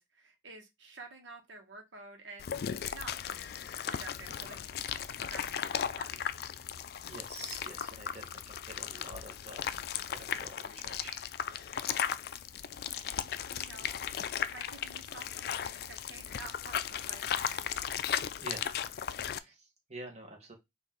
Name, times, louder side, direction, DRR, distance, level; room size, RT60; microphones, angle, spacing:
voice 1, 0.0-2.5 2.9-4.8 5.3-6.1 12.8-13.2 13.5-14.0 14.5-17.8, right 3 dB, 80° right, 1.4 m, -50 dB
sound 1, 2.4-19.4, left 9 dB, 55° left, 0.3 m, -36 dB
voice 2, 7.0-9.8 10.1-11.2 18.4-18.8 19.2-20.5, right 2 dB, 35° right, 1.5 m, -47 dB
4.2 x 2.8 x 3.7 m
head